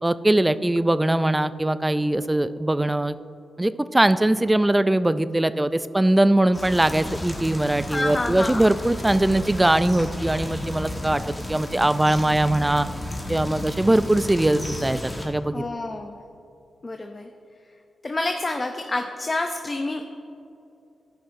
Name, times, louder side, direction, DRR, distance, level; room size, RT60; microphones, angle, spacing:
voice 1, 0.0-3.2 3.6-12.9 13.3-15.6, right 1 dB, 15° right, 14 dB, 0.3 m, -21 dB
sound 1, 6.5-15.3, left 1 dB, 15° left, 1.5 m, -33 dB
voice 2, 7.8-8.7 15.5-16.2 16.8-17.3 18.0-20.0, left 2 dB, 35° left, 4 dB, 0.6 m, -28 dB
13.0 x 5.5 x 2.6 m, 2.7 s
cardioid pair, 65°, 0 cm